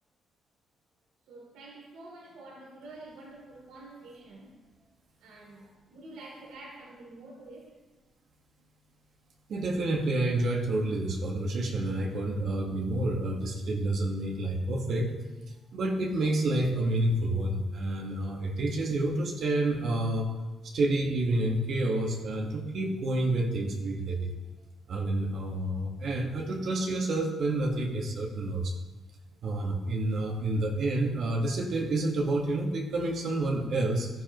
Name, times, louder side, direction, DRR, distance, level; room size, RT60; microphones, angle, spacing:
voice 1, 1.3-4.6 5.2-7.7 25.7-25.8 29.2-29.4, right 2 dB, 90° right, -4 dB, 3.6 m, -48 dB
voice 2, 9.5-15.1 15.7-20.3 20.6-24.3 24.9-28.8 29.4-34.1, right 2 dB, 65° right, 0 dB, 1.7 m, -29 dB
13.0 x 9.8 x 3.2 m, 1.2 s
cardioid pair, 90°, 0 cm